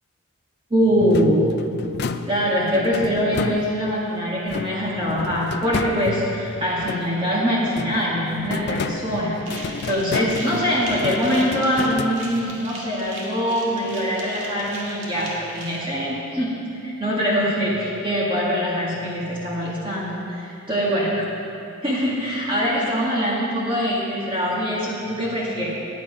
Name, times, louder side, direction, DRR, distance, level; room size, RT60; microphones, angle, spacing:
voice 1, 0.7-1.5 2.3-16.6 16.8-21.1 21.8-25.8, equal, 25° right, -6 dB, 1.7 m, -23 dB
sound 1, 1.0-4.0 4.5-7.3 7.7-12.6, left 4 dB, 50° left, 0.4 m, -31 dB
sound 2, 9.4-15.8, right 2 dB, 60° right, 2.0 m, -38 dB
10.0 x 9.4 x 5.4 m, 2.6 s
head